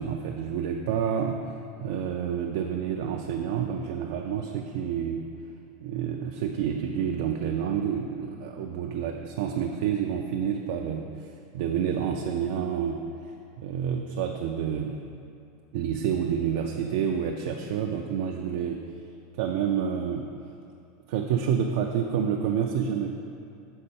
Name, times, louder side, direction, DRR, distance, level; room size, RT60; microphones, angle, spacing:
voice 1, 0.0-1.4 1.8-5.2 5.8-13.0 13.6-15.0 15.7-18.8 19.4-20.3 21.1-23.1, right 8 dB, 60° right, 2 dB, 0.3 m, -28 dB
6.5 x 4.4 x 4.3 m, 2.5 s
supercardioid pair, 160°, 0 cm